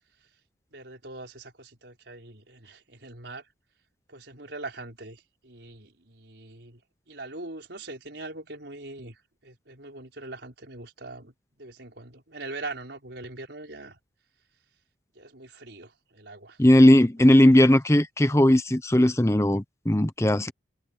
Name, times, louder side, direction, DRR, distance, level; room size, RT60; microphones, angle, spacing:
voice 1, 0.7-3.4 4.1-6.8 7.1-14.0 15.1-16.6, right 2 dB, 75° right, 4.6 m, -42 dB
voice 2, 16.6-20.5, left 1 dB, 15° left, 0.8 m, -18 dB
head